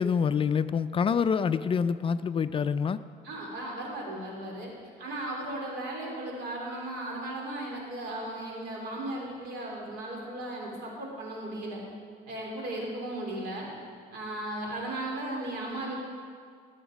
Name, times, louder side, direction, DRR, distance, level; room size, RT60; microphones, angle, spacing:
voice 1, 0.0-3.0, left 6 dB, 30° left, 12 dB, 0.4 m, -26 dB
voice 2, 3.2-4.7 5.0-11.8 12.3-13.7 14.1-16.0, right 1 dB, 80° right, -1 dB, 3.5 m, -36 dB
18.5 x 8.0 x 5.2 m, 2.1 s
cardioid pair, 110°, 17 cm